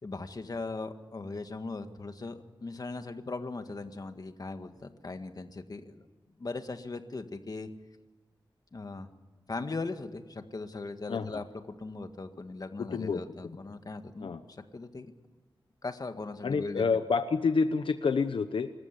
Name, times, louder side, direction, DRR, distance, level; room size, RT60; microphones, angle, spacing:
voice 1, 0.0-6.1 6.4-7.7 8.7-9.1 9.5-11.4 11.8-15.1 15.8-16.8, left 3 dB, 45° left, 8 dB, 1.8 m, -39 dB
voice 2, 12.8-13.2 14.2-14.4 16.4-18.7, left 5 dB, 85° left, 9 dB, 0.9 m, -28 dB
25.5 x 14.0 x 9.9 m, 1.3 s
wide cardioid pair, 95°, 9 cm